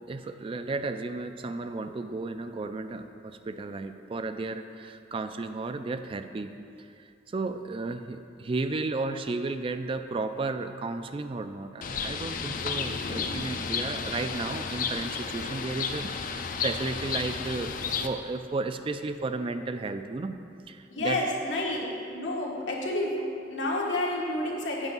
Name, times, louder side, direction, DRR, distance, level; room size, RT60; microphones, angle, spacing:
voice 1, 0.0-17.8 18.0-20.4 20.7-21.3, right 3 dB, 30° right, 9 dB, 0.3 m, -33 dB
Bird, 11.8-18.1, left 5 dB, 50° left, 0.5 m, -32 dB
voice 2, 20.9-24.9, left 1 dB, 90° left, -2 dB, 1.5 m, -30 dB
8.2 x 5.7 x 5.4 m, 2.5 s
head